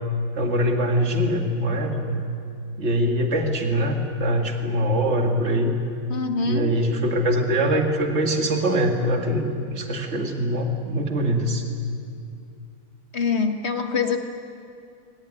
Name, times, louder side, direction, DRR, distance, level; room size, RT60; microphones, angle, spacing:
voice 1, 0.4-2.2 2.8-5.7 6.4-11.6, equal, 45° right, 2 dB, 2.4 m, -23 dB
voice 2, 6.1-6.8 13.1-14.2, left 4 dB, 45° left, 5 dB, 1.8 m, -24 dB
22.5 x 19.5 x 9.9 m, 2.4 s
omnidirectional pair, 1.6 m